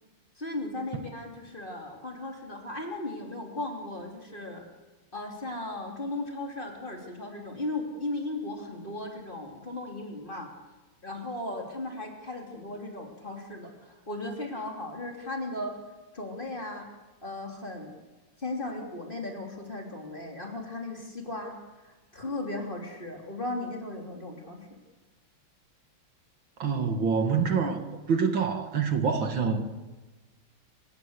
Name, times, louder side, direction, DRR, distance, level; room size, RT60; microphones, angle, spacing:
voice 1, 0.4-4.6 5.1-10.5 11.0-15.8 16.1-16.9 17.2-17.9 18.4-24.8, left 2 dB, 20° left, 2 dB, 3.2 m, -36 dB
voice 2, 26.6-29.6, right 5 dB, 60° right, 7 dB, 2.3 m, -26 dB
29.5 x 16.5 x 8.1 m, 1.2 s
omnidirectional pair, 2.4 m